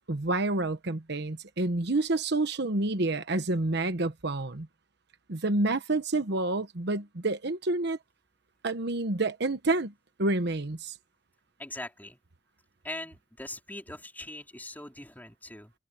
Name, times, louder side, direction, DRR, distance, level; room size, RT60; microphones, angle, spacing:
voice 1, 0.1-4.7 5.3-8.0 8.6-9.9 10.2-10.9, right 2 dB, 65° right, 1.2 m, -28 dB
voice 2, 11.6-12.2 12.8-15.7, left 1 dB, 10° left, 4.4 m, -41 dB
head